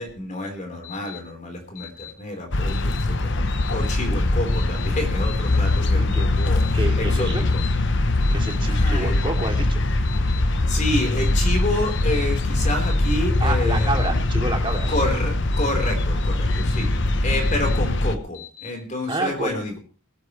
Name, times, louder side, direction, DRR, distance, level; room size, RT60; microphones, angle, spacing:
voice 1, 0.0-3.4 3.7-7.5 8.6-9.1 10.7-14.2 14.9-16.9 17.2-19.8, left 1 dB, 35° left, 3 dB, 4.2 m, -29 dB
Alarm, 0.8-1.2 1.8-2.1 2.7-3.0 3.6-4.0 4.5-4.9 5.4-5.8 6.4-6.7 7.3-7.6 8.2-8.6 9.1-9.5 10.0-10.4 11.0-11.3 11.9-12.3 12.8-13.2 13.7-14.1 14.7-15.0 15.6-15.9 16.5-16.9 17.4-17.8 18.3-18.7, left 13 dB, 85° left, 5.5 m, -40 dB
sound 1, 2.5-18.2, left 2 dB, 55° left, 1.0 m, -22 dB
voice 2, 6.7-7.4 8.3-9.8 13.4-15.0 16.6-16.7 19.1-19.8, right 2 dB, 25° right, 2 dB, 2.7 m, -29 dB
21.5 x 13.5 x 3.3 m, 0.35 s
head